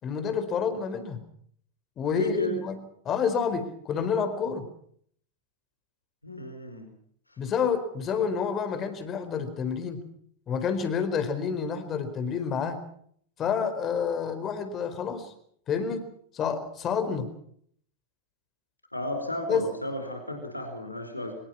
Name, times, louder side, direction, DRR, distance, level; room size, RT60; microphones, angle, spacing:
voice 1, 0.0-1.2 2.0-2.8 3.0-4.7 7.4-10.0 10.5-12.8 13.4-15.3 15.7-16.0 16.3-17.3 19.5-19.6, left 6 dB, 30° left, 10 dB, 4.4 m, -28 dB
voice 2, 2.1-2.5 6.2-6.9 7.3-7.4 18.9-21.3, left 1 dB, 85° left, 5 dB, 4.6 m, -33 dB
24.5 x 22.5 x 5.9 m, 0.63 s
figure-of-eight pair, 90°, 0 cm